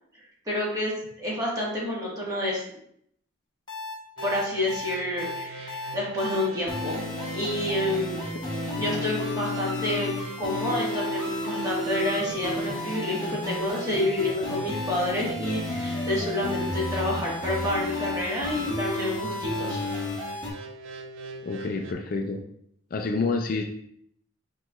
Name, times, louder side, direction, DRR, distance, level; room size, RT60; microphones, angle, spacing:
voice 1, 0.4-2.6 4.2-8.3 8.8-10.1 10.4-20.0, left 1 dB, 20° right, -6 dB, 1.4 m, -29 dB
sound 1, 3.7-20.5, left 2 dB, 20° left, 0.9 m, -33 dB
sound 2, 4.2-21.9, right 2 dB, 80° right, 0.5 m, -39 dB
voice 2, 21.4-22.4 22.9-23.6, left 3 dB, 45° left, 3 dB, 0.4 m, -28 dB
6.0 x 3.0 x 2.3 m, 0.71 s
head